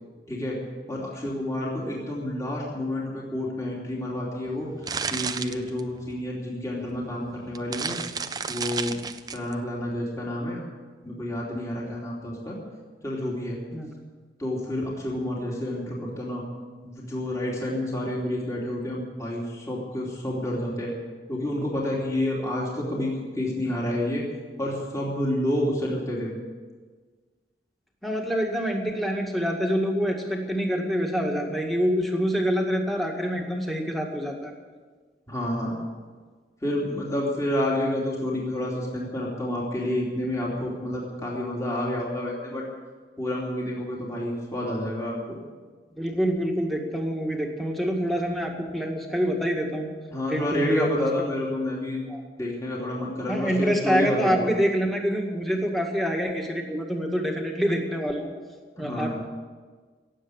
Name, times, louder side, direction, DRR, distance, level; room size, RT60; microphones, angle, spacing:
voice 1, 0.3-0.6 0.9-4.7 5.1-8.0 8.5-9.0 9.3-10.6 11.0-12.6 13.0-13.6 14.4-16.4 16.8-20.9 21.3-24.2 24.6-26.3 35.3-35.8 36.6-42.6 43.2-45.4 50.1-52.0 52.4-54.5 58.8-59.2, left 1 dB, 20° left, -4 dB, 2.9 m, -29 dB
sound 1, 4.5-6.2 7.0-7.1 7.4-9.5, right 5 dB, 20° right, 0.5 m, -32 dB
voice 2, 28.0-34.5 46.0-49.9 50.3-51.1 52.1-52.2 53.3-58.3 58.8-59.2, equal, ahead, 0 dB, 2.0 m, -26 dB
17.5 x 7.7 x 9.7 m, 1.5 s
head